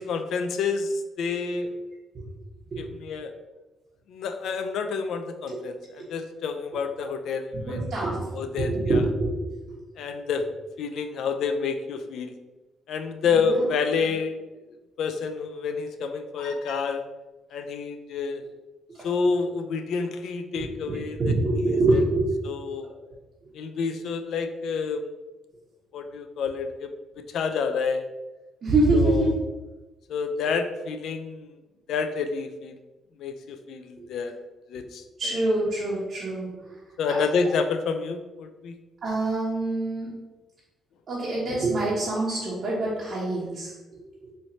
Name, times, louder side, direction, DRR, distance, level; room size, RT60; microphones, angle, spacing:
voice 1, 0.0-1.7 2.8-3.3 4.1-5.7 6.1-9.0 10.0-10.4 10.8-12.3 12.9-14.4 15.0-17.0 17.5-18.4 19.0-21.2 21.6-21.8 22.5-22.9 23.5-25.1 25.9-26.9 27.3-28.0 28.9-29.3 30.1-31.5 31.9-32.8 33.2-34.3 34.7-35.3 37.0-38.8, left 5 dB, 75° left, 8 dB, 0.4 m, -28 dB
voice 2, 7.5-8.2 8.6-9.5 13.2-13.7 19.0-19.1 20.6-22.3 28.6-29.3 34.0-34.1 35.2-36.5 37.1-37.2 39.0-40.1 41.1-44.0, right 2 dB, 50° right, -7 dB, 1.1 m, -25 dB
4.2 x 3.1 x 2.7 m, 1.1 s
cardioid pair, 90°, 0 cm